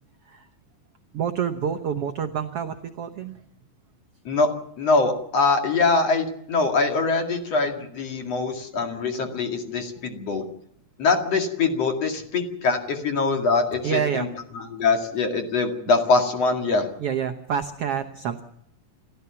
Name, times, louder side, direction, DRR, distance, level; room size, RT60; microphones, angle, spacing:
voice 1, 1.1-3.4 13.8-14.3 17.0-18.4, right 8 dB, 65° right, 7 dB, 1.5 m, -27 dB
voice 2, 4.8-10.4 11.0-14.3 14.5-16.9, left 3 dB, 50° left, 4 dB, 3.0 m, -23 dB
29.0 x 14.0 x 7.1 m, 0.75 s
omnidirectional pair, 4.1 m